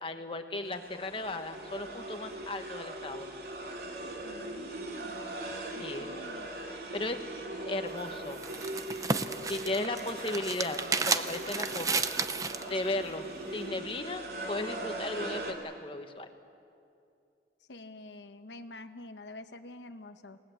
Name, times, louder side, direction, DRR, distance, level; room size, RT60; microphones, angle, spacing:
voice 1, 0.0-3.3 5.8-6.1 6.9-7.3 7.6-8.4 9.5-12.0 12.7-16.3, left 2 dB, 30° left, 7 dB, 1.3 m, -36 dB
sound 1, 0.6-15.5, right 1 dB, 60° right, 2.9 m, -40 dB
voice 2, 4.2-5.2 5.7-6.5 17.7-20.4, left 2 dB, 85° left, 8 dB, 1.0 m, -47 dB
sound 2, 7.9-12.7, right 4 dB, 20° right, 0.6 m, -32 dB
28.5 x 19.0 x 7.9 m, 2.5 s
head